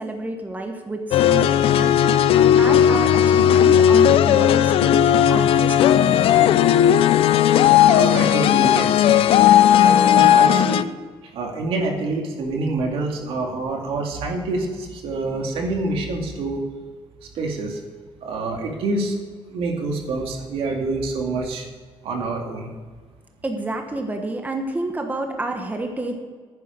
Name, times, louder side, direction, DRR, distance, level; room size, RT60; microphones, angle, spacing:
voice 1, 0.0-2.2 2.6-6.6 23.4-26.2, right 2 dB, 15° right, 4 dB, 1.3 m, -29 dB
sound 1, 1.1-10.8, left 10 dB, 75° left, 0.5 m, -15 dB
voice 2, 7.8-9.4 9.7-10.9 11.3-16.6 17.4-17.8 18.2-19.2 19.5-21.6 22.0-22.7, right 3 dB, 75° right, 2 dB, 2.2 m, -26 dB
10.5 x 9.5 x 5.2 m, 1.5 s
cardioid pair, 110°, 10 cm